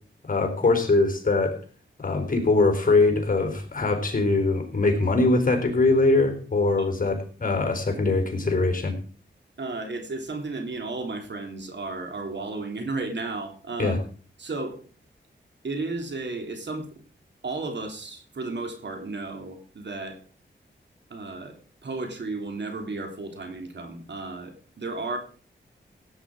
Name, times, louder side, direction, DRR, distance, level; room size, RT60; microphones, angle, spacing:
voice 1, 0.3-1.6 2.0-8.9 13.8-14.0, left 3 dB, 45° left, 5 dB, 4.0 m, -22 dB
voice 2, 9.6-14.0 14.4-14.8 15.6-16.9 17.4-20.2 21.1-21.6 21.8-25.2, right 3 dB, 65° right, 4 dB, 3.3 m, -33 dB
16.5 x 9.1 x 4.9 m, 0.41 s
cardioid pair, 70°, 20 cm